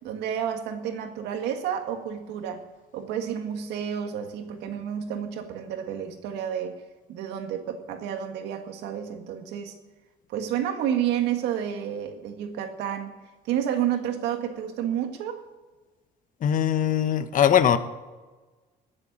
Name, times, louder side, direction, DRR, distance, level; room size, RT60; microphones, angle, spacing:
voice 1, 0.0-2.6 2.9-6.8 7.1-9.7 10.3-13.1 13.5-15.4, right 9 dB, 85° right, 6 dB, 1.9 m, -30 dB
voice 2, 16.4-17.8, left 9 dB, 50° left, 11 dB, 1.1 m, -21 dB
20.5 x 7.8 x 7.5 m, 1.3 s
cardioid pair, 110°, 17 cm